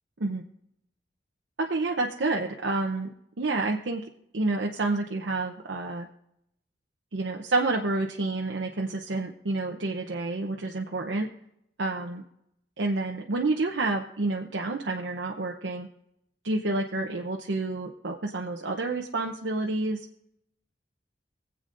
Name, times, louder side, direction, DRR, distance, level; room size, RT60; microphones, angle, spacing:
voice 1, 1.6-3.1 3.4-4.0 4.3-6.1 7.1-11.3 11.8-12.2 12.8-15.9 16.4-20.1, right 2 dB, 85° right, 1 dB, 0.8 m, -29 dB
24.5 x 8.1 x 2.6 m, 0.79 s
head